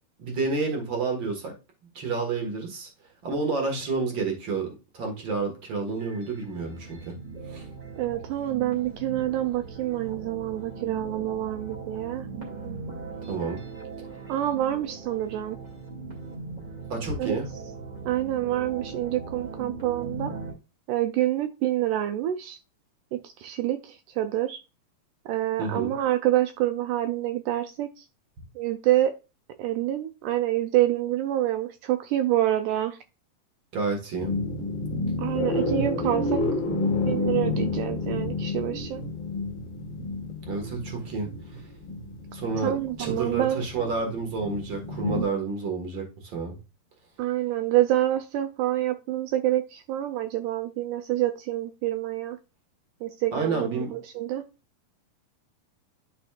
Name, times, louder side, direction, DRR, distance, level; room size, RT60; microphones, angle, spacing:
voice 1, 0.2-1.5 1.9-2.9 3.2-4.7 4.9-7.1 7.5-7.6 13.3-13.6 16.9-17.5 25.6-25.9 33.7-34.3 40.5-41.3 42.3-46.6 53.3-53.9, right 4 dB, 45° right, 2 dB, 1.6 m, -29 dB
sound 1, 5.9-20.5, right 4 dB, 30° right, 2.1 m, -39 dB
voice 2, 8.0-12.3 12.6-13.0 14.3-15.6 17.2-17.4 18.1-20.3 20.9-22.6 23.1-24.6 25.3-28.1 28.6-29.2 29.6-33.0 35.2-36.4 37.1-39.0 42.6-43.6 47.2-52.4 53.0-54.4, right 13 dB, 85° right, 8 dB, 1.9 m, -27 dB
sound 2, 34.2-45.2, left 2 dB, 60° left, 1.3 m, -30 dB
11.0 x 4.4 x 2.4 m, 0.29 s
omnidirectional pair, 4.1 m